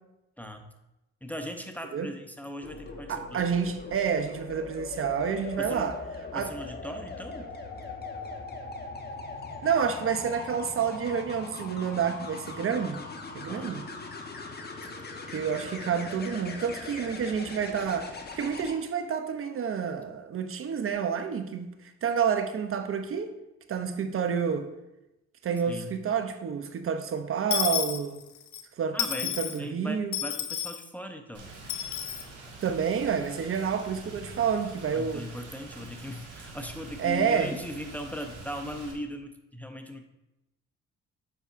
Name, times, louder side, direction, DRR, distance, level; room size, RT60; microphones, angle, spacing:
voice 1, 0.4-0.7 1.2-3.4 5.6-5.9 6.3-7.6 13.5-13.8 25.7-25.9 28.9-31.5 34.9-40.0, left 1 dB, 5° left, 5 dB, 0.6 m, -39 dB
sound 1, 2.6-18.7 20.6-20.9, left 3 dB, 35° left, 0.9 m, -40 dB
voice 2, 3.1-6.0 6.3-6.5 9.6-13.0 13.3-13.9 15.3-23.3 23.7-24.7 25.4-28.3 28.8-29.0 29.4-30.2 32.6-35.3 37.0-37.5, right 7 dB, 45° right, 9 dB, 0.6 m, -29 dB
Dishes pots and pans / Coin (dropping), 27.5-28.6 29.0-29.6 30.1-30.8 31.7-32.2, left 10 dB, 70° left, 0.7 m, -31 dB
Rain, 31.3-38.9, right 3 dB, 80° right, 1.6 m, -46 dB
8.2 x 5.5 x 2.5 m, 0.95 s
cardioid pair, 90°, 30 cm